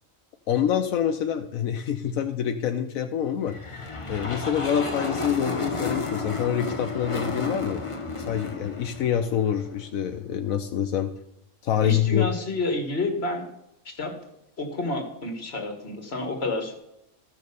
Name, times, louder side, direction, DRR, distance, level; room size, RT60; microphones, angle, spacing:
voice 1, 0.5-7.8 8.3-11.1 11.6-12.3, left 9 dB, 85° left, 7 dB, 1.2 m, -26 dB
sound 1, 3.5-9.9, left 3 dB, 25° left, 1.2 m, -32 dB
voice 2, 11.8-13.5 13.9-14.1 14.6-16.7, left 2 dB, 50° left, 4 dB, 2.1 m, -29 dB
14.0 x 6.5 x 6.9 m, 0.82 s
omnidirectional pair, 1.4 m